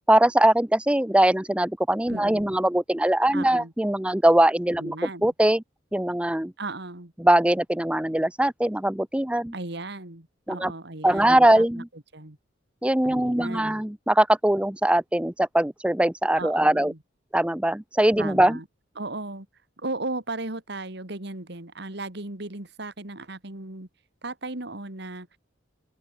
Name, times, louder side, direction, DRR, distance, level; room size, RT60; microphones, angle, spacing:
voice 1, 0.1-5.6 5.9-6.5 7.2-9.5 10.5-10.7 11.0-11.9 12.8-16.9 17.3-18.6, right 1 dB, 5° right, 0.6 m, -21 dB
voice 2, 2.1-2.6 3.3-3.7 4.8-5.3 6.6-7.1 9.5-11.6 12.1-12.4 13.0-13.8 16.4-17.0 18.2-18.6 19.0-19.5 19.8-23.9 24.2-25.4, right 2 dB, 60° right, 2.6 m, -36 dB
open air
head